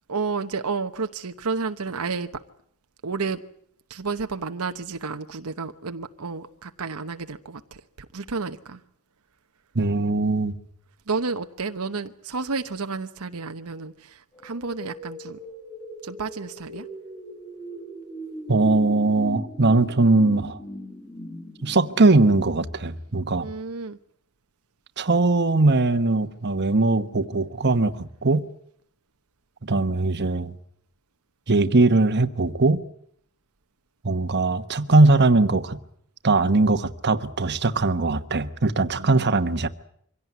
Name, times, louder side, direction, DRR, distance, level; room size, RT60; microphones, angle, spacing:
voice 1, 0.1-2.3 3.0-3.4 3.9-8.8 11.1-15.4 16.0-16.9 23.4-24.0 39.0-39.4, right 4 dB, 80° right, 1.0 m, -31 dB
voice 2, 9.7-10.6 18.5-20.6 21.6-23.5 25.0-28.5 29.6-30.5 31.5-32.8 34.0-35.8 36.2-39.7, right 3 dB, 50° right, 1.2 m, -20 dB
sound 1, 14.3-23.3, equal, 25° left, 4.1 m, -39 dB
24.5 x 17.0 x 9.5 m
head